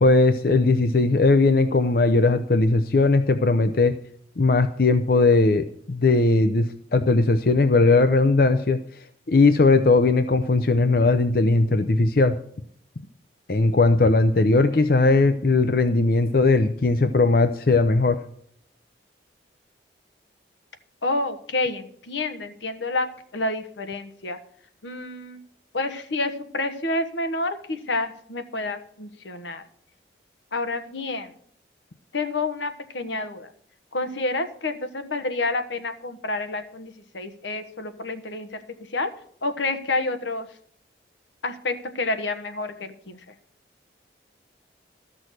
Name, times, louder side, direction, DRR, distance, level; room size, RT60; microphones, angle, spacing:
voice 1, 0.0-3.9 4.4-8.8 9.3-12.4 13.5-18.2, left 3 dB, 55° left, 9 dB, 0.6 m, -19 dB
voice 2, 21.0-23.1 23.3-24.4 24.8-25.4 25.7-29.6 30.5-31.4 32.1-33.5 33.9-38.5 38.9-39.1 39.4-40.5 41.4-43.2, left 2 dB, 85° left, 9 dB, 1.3 m, -29 dB
13.5 x 6.2 x 6.4 m, 0.62 s
head